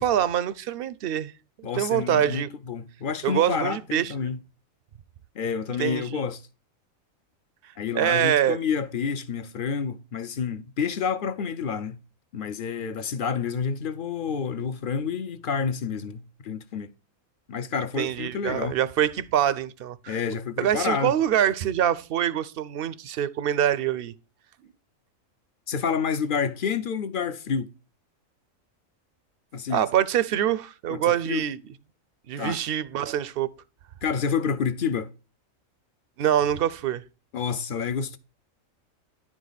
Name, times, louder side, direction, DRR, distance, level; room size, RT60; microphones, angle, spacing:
voice 1, 0.0-1.3 1.8-2.5 3.2-4.3 5.8-6.2 7.9-8.6 18.0-20.2 20.6-24.1 29.7-31.6 32.3-33.5 36.2-37.0, right 10 dB, 65° right, 0.6 m, -25 dB
voice 2, 1.6-4.4 5.4-6.4 7.8-12.0 12.3-16.9 17.5-18.8 20.1-21.1 25.7-27.7 29.5-29.8 30.9-31.4 32.4-32.6 34.0-35.1 37.3-38.2, left 6 dB, 55° left, 0.6 m, -29 dB
10.0 x 5.0 x 4.0 m
omnidirectional pair, 1.4 m